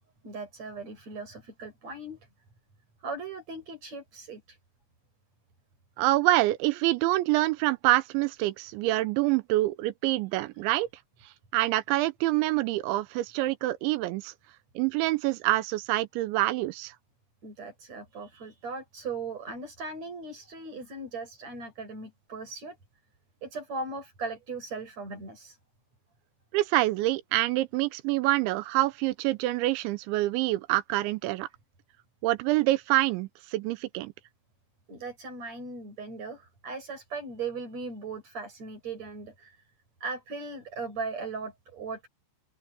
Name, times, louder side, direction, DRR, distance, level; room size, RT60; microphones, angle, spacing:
voice 1, 0.2-2.2 3.0-4.6 17.4-22.8 23.4-25.6 34.9-39.6 40.0-42.1, right 3 dB, 35° right, 8.3 m, -38 dB
voice 2, 6.0-10.9 11.5-14.3 14.8-16.9 26.5-31.5 32.2-34.1, right 17 dB, 90° right, 3.0 m, -26 dB
open air
omnidirectional pair, 5.4 m